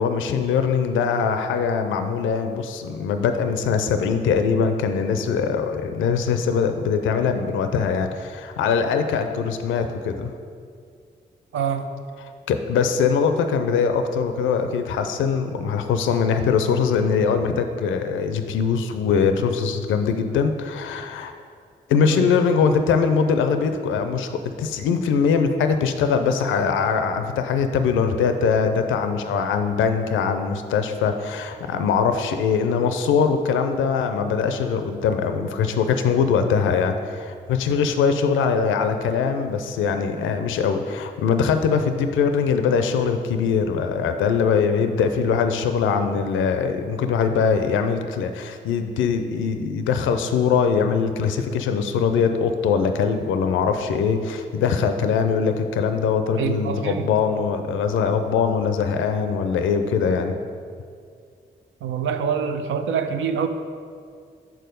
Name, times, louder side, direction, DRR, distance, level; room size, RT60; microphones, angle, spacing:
voice 1, 0.0-10.3 12.5-21.3 21.9-60.3, left 6 dB, 85° left, 7 dB, 0.4 m, -22 dB
voice 2, 11.5-11.9 22.0-22.3 56.4-57.0 61.8-63.5, right 7 dB, 80° right, 7 dB, 0.5 m, -25 dB
6.0 x 4.6 x 5.1 m, 2.2 s
supercardioid pair, 40°, 20 cm